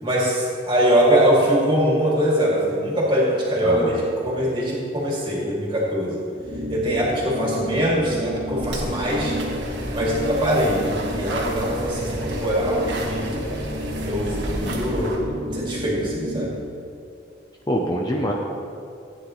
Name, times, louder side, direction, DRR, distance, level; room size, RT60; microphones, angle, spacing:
voice 1, 0.0-6.2 6.7-9.3 9.9-13.3 14.0-15.1 15.5-16.5, equal, 25° right, -5 dB, 2.5 m, -22 dB
voice 2, 3.6-4.0 17.7-18.3, equal, 20° left, -1 dB, 0.7 m, -24 dB
sound 1, 6.4-16.8, equal, 85° right, 2.1 m, -32 dB
sound 2, 8.6-15.2, right 1 dB, 70° right, 1.5 m, -31 dB
15.0 x 9.3 x 3.2 m, 2.4 s
head